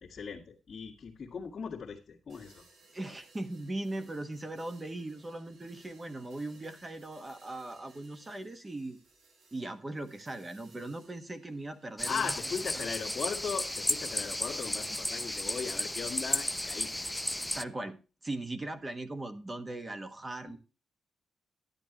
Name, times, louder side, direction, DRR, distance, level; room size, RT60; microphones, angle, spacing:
voice 1, 0.0-2.7 12.1-16.9 20.5-20.6, left 6 dB, 40° left, -4 dB, 2.0 m, -38 dB
sound 1, 2.3-12.1, right 3 dB, 70° right, 5.3 m, -62 dB
voice 2, 2.9-9.0 9.5-12.3 12.7-12.9 17.5-18.0 18.2-20.6, right 2 dB, 20° right, 9 dB, 1.3 m, -39 dB
sound 2, 12.0-17.6, left 1 dB, 5° left, 0.5 m, -34 dB
12.0 x 11.0 x 2.9 m, 0.33 s
cardioid pair, 120°, 0 cm